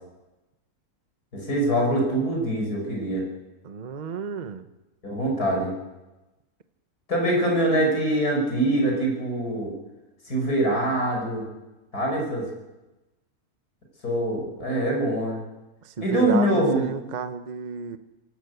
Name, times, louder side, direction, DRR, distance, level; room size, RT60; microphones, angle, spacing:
voice 1, 1.3-3.2 5.0-5.7 7.1-9.7 10.2-11.4 11.9-12.5 14.0-15.4 16.0-16.9, right 1 dB, 75° left, 0 dB, 6.3 m, -24 dB
voice 2, 3.6-4.7 15.8-18.0, right 6 dB, 35° right, 9 dB, 0.9 m, -32 dB
24.0 x 13.5 x 8.1 m, 1.1 s
omnidirectional pair, 1.6 m